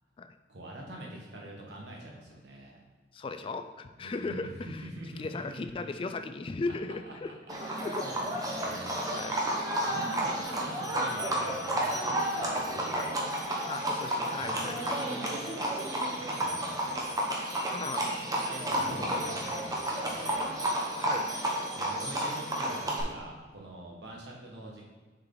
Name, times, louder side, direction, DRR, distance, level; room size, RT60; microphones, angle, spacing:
voice 1, 0.5-2.8 4.0-6.0 7.1-9.0 9.9-13.4 14.4-17.0 18.4-20.5 21.7-24.9, right 1 dB, 70° right, -1 dB, 1.4 m, -44 dB
voice 2, 3.1-4.9 5.2-7.3 7.8-8.1 9.1-9.7 12.9-13.1 13.6-14.9 17.7-18.3 18.8-19.2 21.0-21.3, left 3 dB, 30° left, 9 dB, 0.3 m, -37 dB
Livestock farm animals working animals, 7.5-23.0, right 1 dB, 20° right, 1.0 m, -31 dB
6.8 x 4.7 x 3.9 m, 1.4 s
head